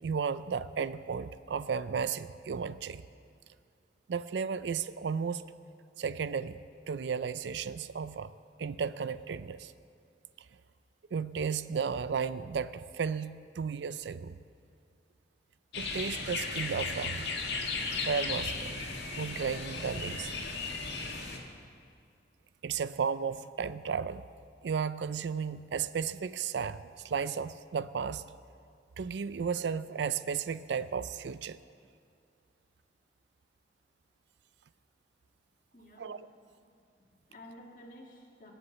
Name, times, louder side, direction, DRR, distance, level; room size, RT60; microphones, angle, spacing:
voice 1, 0.0-3.0 4.1-5.4 6.0-6.6 6.9-8.3 8.6-9.7 11.1-14.4 15.8-17.3 18.0-18.8 19.2-20.3 22.6-24.2 24.6-28.2 29.0-31.6 36.0-36.3, right 6 dB, 75° right, 14 dB, 0.4 m, -34 dB
sound 1, 15.7-21.4, left 4 dB, 75° left, 1.8 m, -36 dB
voice 2, 35.7-36.1 37.0-38.5, left 1 dB, 45° left, 0 dB, 2.1 m, -52 dB
19.5 x 8.0 x 7.1 m, 2.4 s
head